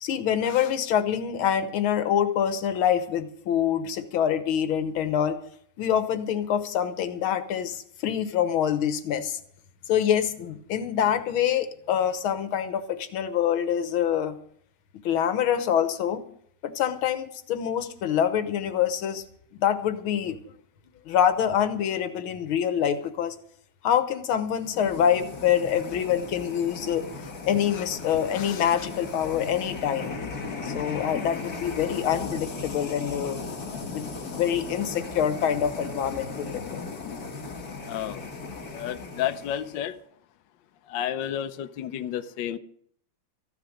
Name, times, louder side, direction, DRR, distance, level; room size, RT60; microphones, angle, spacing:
voice 1, 0.0-5.4 5.8-9.4 9.9-14.4 15.0-16.2 16.6-19.2 19.5-20.4 21.1-23.4 23.8-30.2 30.6-33.4 33.9-36.8, left 9 dB, 85° left, 11 dB, 1.9 m, -25 dB
sound 1, 24.5-39.9, left 4 dB, 50° left, 2.2 m, -37 dB
voice 2, 37.9-38.2 38.7-39.9 40.9-42.6, left 10 dB, 70° left, 9 dB, 1.3 m, -31 dB
14.5 x 11.0 x 6.4 m, 0.65 s
omnidirectional pair, 2.2 m